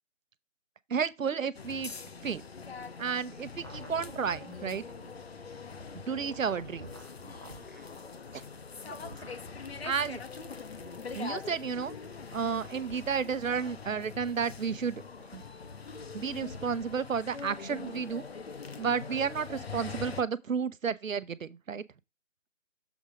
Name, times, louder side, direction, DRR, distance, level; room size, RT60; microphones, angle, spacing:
voice 1, 0.9-1.9 2.2-2.4 3.0-4.8 6.1-6.9 9.8-10.2 11.1-11.9 12.3-15.0 15.3-15.4 16.1-18.3 18.8-21.8, right 6 dB, 80° right, 0.8 m, -32 dB
sound 1, 1.5-20.2, left 5 dB, 50° left, 0.7 m, -43 dB
sound 2, 3.6-5.2 6.1-7.8 8.8-9.4 10.2-11.2, right 1 dB, 15° right, 0.7 m, -50 dB
7.1 x 3.9 x 4.8 m
figure-of-eight pair, 165°, 39 cm